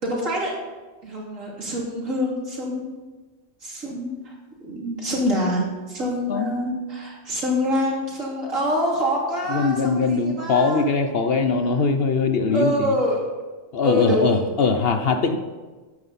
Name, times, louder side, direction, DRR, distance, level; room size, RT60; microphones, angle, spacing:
voice 1, 0.0-0.5 1.0-2.9 3.6-4.3 4.6-10.9 12.5-13.2 13.8-14.4, equal, 80° right, -3 dB, 3.3 m, -25 dB
voice 2, 9.5-12.9 13.7-15.4, left 4 dB, 55° left, 8 dB, 0.9 m, -21 dB
13.5 x 9.6 x 4.2 m, 1.3 s
omnidirectional pair, 1.4 m